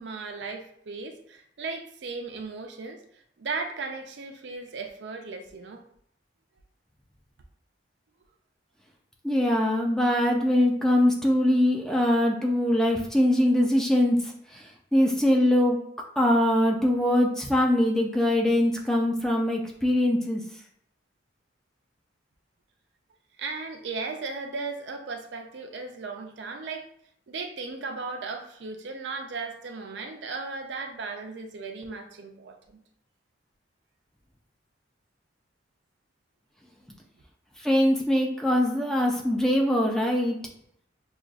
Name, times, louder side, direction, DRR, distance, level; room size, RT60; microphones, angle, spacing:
voice 1, 0.0-5.8 23.4-26.9 27.3-32.8, right 4 dB, 70° right, 5 dB, 0.5 m, -36 dB
voice 2, 9.2-15.8 16.2-20.4 37.6-40.4, left 1 dB, 5° left, 0 dB, 0.4 m, -22 dB
6.0 x 2.4 x 2.3 m, 0.68 s
head